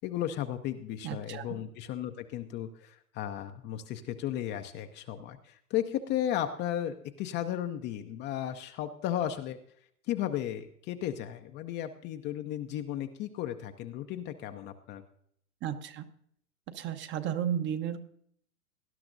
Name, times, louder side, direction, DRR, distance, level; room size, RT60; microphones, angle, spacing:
voice 1, 0.0-9.6 10.1-15.0, left 11 dB, 25° left, 7 dB, 0.6 m, -35 dB
voice 2, 1.0-1.6 15.6-16.1 16.7-18.0, right 9 dB, 25° right, 9 dB, 0.8 m, -33 dB
18.5 x 11.5 x 2.6 m, 0.67 s
hypercardioid pair, 115°, 42 cm